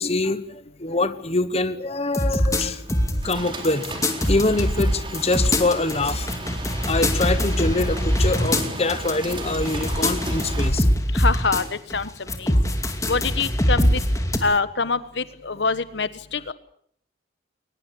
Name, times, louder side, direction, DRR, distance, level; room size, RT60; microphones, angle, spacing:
voice 1, 0.0-2.8 3.2-3.9 4.3-6.3 6.9-10.9 12.5-12.6, left 2 dB, 35° left, 12 dB, 1.2 m, -24 dB
sound 1, 2.1-3.3 3.6-11.6 11.9-14.4, equal, 15° left, 2.5 m, -23 dB
sound 2, 2.5-10.7, right 2 dB, 25° right, 3.9 m, -35 dB
voice 2, 11.1-11.6 11.9-12.1 12.4-12.5 13.1-14.0 14.4-16.5, left 4 dB, 70° left, 14 dB, 1.2 m, -25 dB
22.5 x 20.5 x 8.6 m, 0.65 s
head